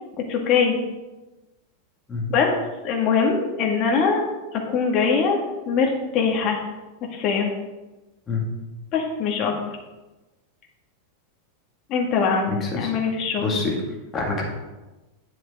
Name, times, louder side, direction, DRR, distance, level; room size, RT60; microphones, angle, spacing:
voice 1, 0.3-0.8 2.3-2.5 2.8-4.2 4.5-6.6 7.1-7.5 8.9-9.5 11.9-13.5, left 5 dB, 35° left, 0 dB, 1.9 m, -22 dB
voice 2, 12.5-12.9 13.4-13.7 14.1-14.4, left 4 dB, 15° left, -2 dB, 2.0 m, -25 dB
10.0 x 7.7 x 3.6 m, 1.1 s
supercardioid pair, 160°, 0 cm